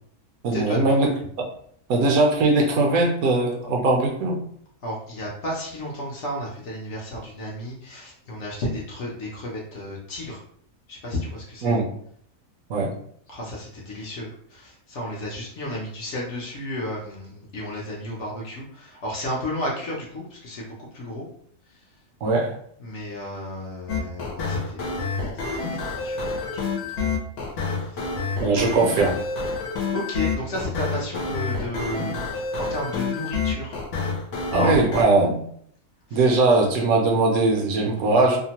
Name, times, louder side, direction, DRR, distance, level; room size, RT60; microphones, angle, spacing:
voice 1, 0.4-1.1 1.4-1.5 1.9-4.4 11.6-11.9 12.7-12.9 22.2-22.5 28.4-29.2 34.5-35.4 36.1-38.4, right 2 dB, 75° right, 1 dB, 1.0 m, -20 dB
voice 2, 4.8-10.4 10.9-11.8 13.3-21.3 22.8-24.9 25.5-26.3 26.6-27.2 27.8-28.0 29.9-32.3 32.5-33.7 34.5-34.8 36.1-36.2, left 1 dB, 60° left, -4 dB, 0.9 m, -33 dB
sound 1, 23.9-35.0, left 4 dB, 80° left, 1.1 m, -28 dB
2.8 x 2.1 x 2.8 m, 0.64 s
omnidirectional pair, 1.6 m